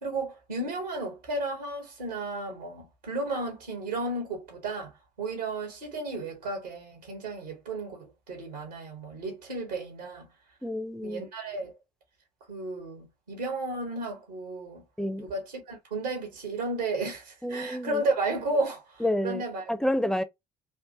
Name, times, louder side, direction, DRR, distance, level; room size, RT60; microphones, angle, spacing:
voice 1, 0.0-4.9 5.2-10.3 11.0-11.7 12.5-14.8 15.2-19.7, right 2 dB, 80° right, 1.4 m, -33 dB
voice 2, 10.6-11.2 15.0-15.2 17.4-18.0 19.0-19.4 19.7-20.2, left 1 dB, ahead, 0.6 m, -29 dB
3.4 x 2.7 x 2.6 m
figure-of-eight pair, 50°, 21 cm